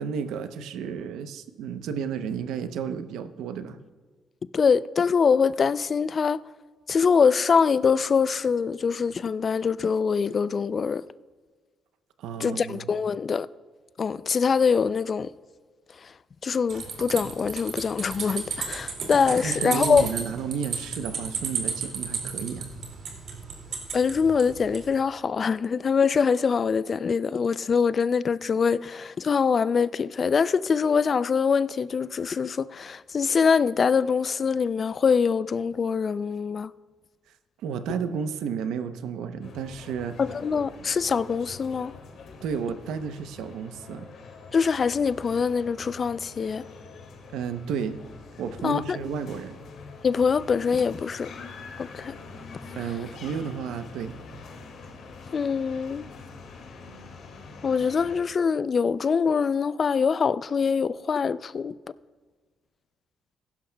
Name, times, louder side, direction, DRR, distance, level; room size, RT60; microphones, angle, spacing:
voice 1, 0.0-3.8 12.2-12.9 19.4-22.7 37.6-40.2 42.4-44.1 47.3-48.0 48.4-49.6 52.7-54.2, right 7 dB, 85° right, 0.7 m, -32 dB
voice 2, 4.5-6.4 6.9-11.0 12.4-13.5 14.0-15.3 16.0-16.1 16.4-20.1 23.9-36.7 40.2-41.9 44.5-46.6 48.6-49.0 50.0-51.3 51.8-52.1 55.3-56.1 57.6-61.7, left 6 dB, 45° left, 0.3 m, -24 dB
sound 1, 16.7-24.8, right 5 dB, 65° right, 2.3 m, -33 dB
sound 2, 39.4-58.2, left 4 dB, 70° left, 2.1 m, -44 dB
16.0 x 12.0 x 2.3 m
cardioid pair, 90°, 0 cm